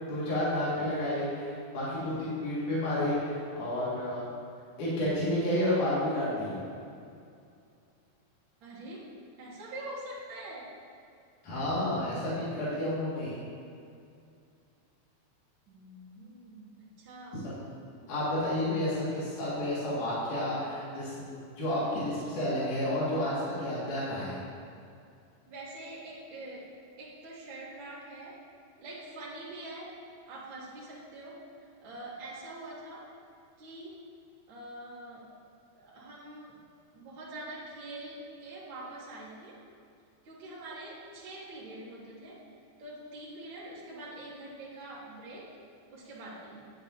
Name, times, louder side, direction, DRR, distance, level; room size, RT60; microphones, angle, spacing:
voice 1, 0.1-4.2 4.8-6.6 11.4-13.4 17.4-17.6 18.1-24.4, left 1 dB, 55° left, -9 dB, 3.6 m, -31 dB
voice 2, 8.6-9.1 9.4-10.7 15.7-17.4 25.5-26.6 27.0-28.4 28.8-30.0 30.3-33.1 33.6-34.0 34.5-35.3 35.7-36.6 36.9-39.6 40.2-42.4 42.8-45.5 45.9-46.7, right 1 dB, 60° right, -7 dB, 1.2 m, -44 dB
10.0 x 9.2 x 2.8 m, 2.4 s
omnidirectional pair, 4.5 m